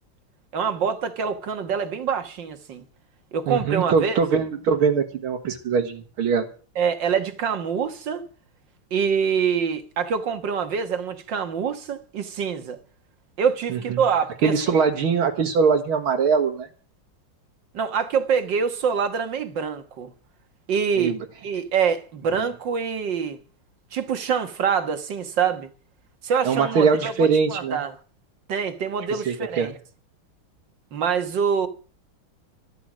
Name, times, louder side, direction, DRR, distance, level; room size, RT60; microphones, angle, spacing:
voice 1, 0.5-2.8 3.3-4.2 6.8-8.2 8.9-12.8 13.4-14.5 17.7-20.1 20.7-21.2 21.4-23.4 23.9-25.7 26.2-28.0 28.5-29.7 30.9-31.7, right 6 dB, 60° right, 2.0 m, -25 dB
voice 2, 3.5-6.5 13.7-14.0 14.4-16.7 21.0-21.2 26.4-27.8 29.1-29.7, right 5 dB, 80° right, 2.2 m, -22 dB
13.0 x 13.0 x 6.2 m
omnidirectional pair, 2.3 m